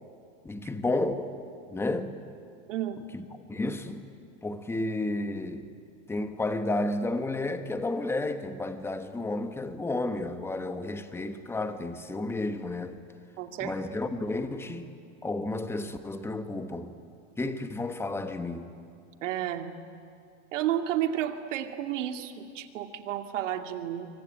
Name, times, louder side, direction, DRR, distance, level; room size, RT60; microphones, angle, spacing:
voice 1, 0.4-1.4 1.7-2.2 3.1-3.2 3.5-4.1 4.4-5.7 6.1-13.0 13.6-14.9 15.2-16.9 17.4-18.7, left 2 dB, 5° left, 1.2 m, -32 dB
voice 2, 13.4-13.7 19.2-19.7 20.5-24.1, right 11 dB, 85° right, 2.4 m, -31 dB
26.5 x 24.0 x 9.5 m
supercardioid pair, 145°, 36 cm